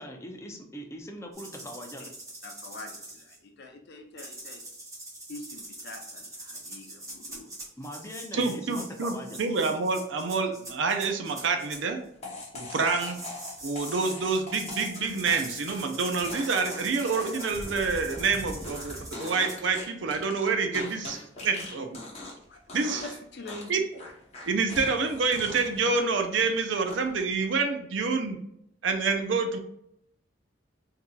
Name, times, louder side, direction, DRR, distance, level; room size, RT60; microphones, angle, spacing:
voice 1, 0.0-2.0 7.8-9.4, equal, 15° left, 3 dB, 0.5 m, -41 dB
sound 1, 1.3-3.4 4.2-11.8 13.0-19.6, right 1 dB, 20° right, 1.0 m, -43 dB
voice 2, 2.4-4.6 5.3-7.5 22.5-23.7, left 2 dB, 60° left, 3 dB, 0.7 m, -44 dB
voice 3, 8.3-12.0 12.5-13.2 13.6-22.0 22.7-23.0 23.7-23.8 24.5-28.4 28.8-29.6, right 4 dB, 75° right, 6 dB, 0.5 m, -27 dB
sound 2, 12.2-22.4 22.7-23.2 23.5-26.5 26.9-27.3, left 2 dB, 35° left, 1.0 m, -41 dB
3.8 x 2.8 x 2.3 m, 0.76 s
head